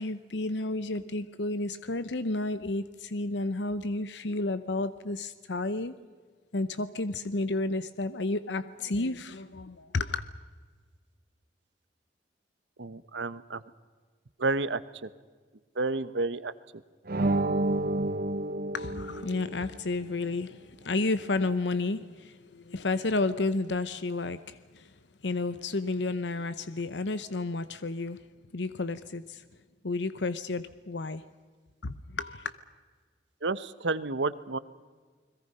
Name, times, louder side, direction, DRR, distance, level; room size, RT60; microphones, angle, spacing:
voice 1, 0.0-5.9 6.5-10.2 18.7-24.9 25.2-28.2 28.5-29.4 29.8-31.2 31.8-32.5, left 2 dB, 80° left, 13 dB, 0.9 m, -31 dB
voice 2, 12.8-13.6 14.4-15.1 15.8-16.5 33.4-34.6, right 3 dB, 85° right, 15 dB, 1.0 m, -30 dB
sound 1, 17.1-19.8, right 2 dB, 55° right, 0.8 m, -29 dB
30.0 x 21.5 x 5.5 m, 1.5 s
head